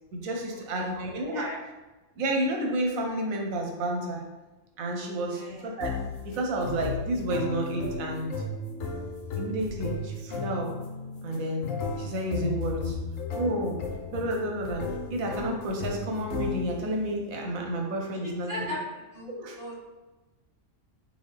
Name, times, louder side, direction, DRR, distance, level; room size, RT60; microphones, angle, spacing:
voice 1, 0.1-1.5 2.2-4.2 4.8-5.9 6.2-8.3 9.4-10.7 11.2-11.7 12.0-13.0 13.3-13.8 14.1-18.6 19.3-19.6, right 1 dB, 85° right, 1 dB, 1.1 m, -30 dB
voice 2, 5.3-5.6 18.2-18.8 19.1-19.7, left 1 dB, 15° right, -7 dB, 1.3 m, -37 dB
sound 1, 5.8-17.0, left 4 dB, 75° left, 1.0 m, -35 dB
3.9 x 3.7 x 3.3 m, 1.1 s
omnidirectional pair, 1.4 m